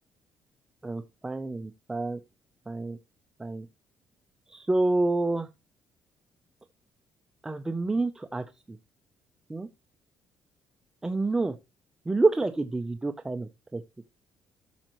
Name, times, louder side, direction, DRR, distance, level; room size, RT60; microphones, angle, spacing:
voice 1, 0.8-2.2 2.7-3.0 3.4-3.7 4.5-5.5 7.4-8.8 9.5-9.7 11.0-11.6 12.1-13.8, right 2 dB, 10° right, 0.5 m, -28 dB
13.0 x 6.2 x 3.0 m
cardioid pair, 150°, 5 cm